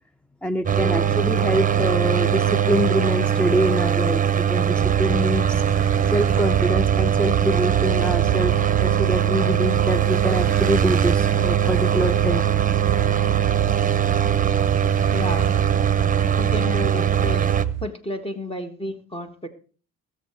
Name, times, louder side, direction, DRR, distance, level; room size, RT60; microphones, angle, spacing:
voice 1, 0.4-5.6 6.1-12.5, equal, 5° left, 14 dB, 0.5 m, -25 dB
sound 1, 0.7-17.7, right 9 dB, 25° right, 0.8 m, -21 dB
sound 2, 4.8-17.9, right 16 dB, 55° right, 0.5 m, -29 dB
voice 2, 15.1-15.5 16.3-17.5 17.8-19.5, left 1 dB, 20° left, 7 dB, 1.6 m, -31 dB
19.0 x 7.2 x 4.5 m, 0.39 s
cardioid pair, 90°, 30 cm